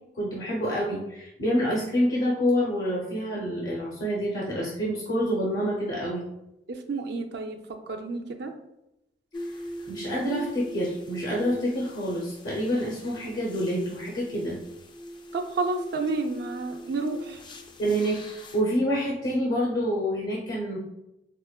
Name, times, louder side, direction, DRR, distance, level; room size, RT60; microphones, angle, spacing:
voice 1, 0.2-6.2 9.9-14.6 17.8-20.8, equal, 60° left, -4 dB, 0.7 m, -27 dB
voice 2, 6.7-7.6 7.9-8.5 15.3-17.4, right 3 dB, 65° right, 5 dB, 0.4 m, -30 dB
sound 1, 9.3-18.6, equal, 25° left, 0.4 m, -41 dB
4.8 x 2.2 x 2.3 m, 0.87 s
head